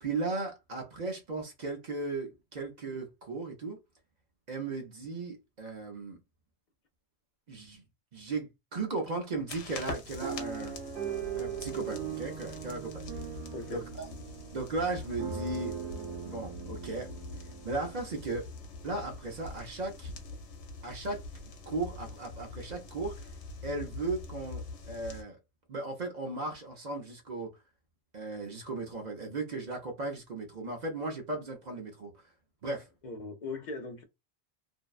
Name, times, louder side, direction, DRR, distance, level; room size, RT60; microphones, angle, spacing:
voice 1, 0.0-3.8 4.5-6.2 7.5-7.8 8.1-10.8 11.4-13.0 13.7-14.1 14.5-15.8 16.2-17.1 17.6-18.5 18.8-20.2 20.8-21.2 21.7-23.3 23.6-25.4 25.7-27.5 28.1-32.1 32.6-32.9, right 3 dB, 50° right, 0.6 m, -36 dB
sound 1, 9.5-25.2, left 3 dB, 80° left, 1.0 m, -44 dB
sound 2, 10.2-18.3 18.9-19.0 19.3-19.5, right 7 dB, 80° right, 1.0 m, -40 dB
voice 2, 13.5-13.9 33.0-34.0, left 3 dB, 50° left, 0.6 m, -39 dB
2.6 x 2.1 x 2.3 m
omnidirectional pair, 1.2 m